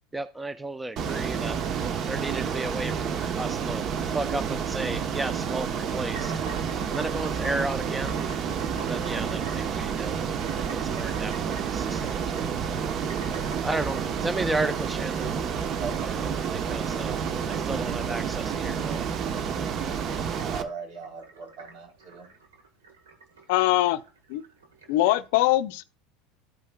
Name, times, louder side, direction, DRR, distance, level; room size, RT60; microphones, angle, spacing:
voice 1, 0.1-1.6 2.1-3.8 4.1-6.4 6.9-8.3 8.9-10.1 10.8-12.8 13.6-15.4 16.0-17.2 17.5-19.0, right 2 dB, 10° right, 0.5 m, -33 dB
Ocean, 1.0-20.6, right 7 dB, 45° right, 0.9 m, -29 dB
sound 1, 6.0-25.2, right 5 dB, 85° right, 1.4 m, -45 dB
voice 2, 20.4-22.3, right 5 dB, 60° right, 3.3 m, -38 dB
voice 3, 23.5-24.0 24.3-24.4 24.9-25.8, left 16 dB, 70° left, 0.5 m, -22 dB
13.5 x 5.4 x 2.2 m
hypercardioid pair, 90°, 0 cm